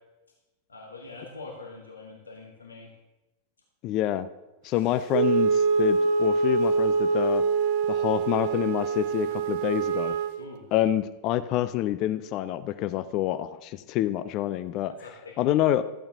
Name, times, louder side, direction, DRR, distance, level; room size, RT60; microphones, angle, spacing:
voice 1, 0.7-2.9 6.3-6.4 10.4-10.7 15.0-15.3, left 3 dB, 75° left, 0 dB, 1.4 m, -44 dB
voice 2, 3.8-4.3 4.6-7.4 7.9-10.2 10.7-14.9 15.4-15.8, left 12 dB, 40° left, 14 dB, 0.4 m, -27 dB
Wind instrument woodwind instrument, 5.1-10.4, right 4 dB, 50° right, 0.5 m, -24 dB
13.0 x 8.6 x 2.8 m, 1.1 s
figure-of-eight pair, 90°, 0 cm